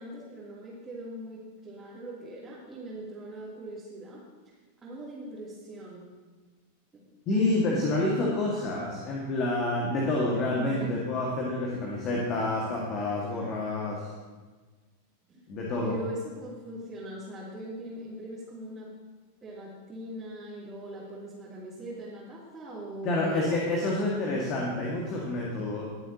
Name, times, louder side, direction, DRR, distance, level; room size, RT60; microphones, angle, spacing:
voice 1, 0.0-4.2 4.8-6.0 6.9-7.0 10.5-11.2 15.3-15.4 15.8-18.9 19.4-23.9, right 1 dB, 20° right, -9 dB, 3.2 m, -40 dB
voice 2, 7.3-14.1 15.5-15.9 23.0-25.8, left 2 dB, 35° left, -3 dB, 2.1 m, -28 dB
20.5 x 7.9 x 3.0 m, 1.3 s
figure-of-eight pair, 90°, 0 cm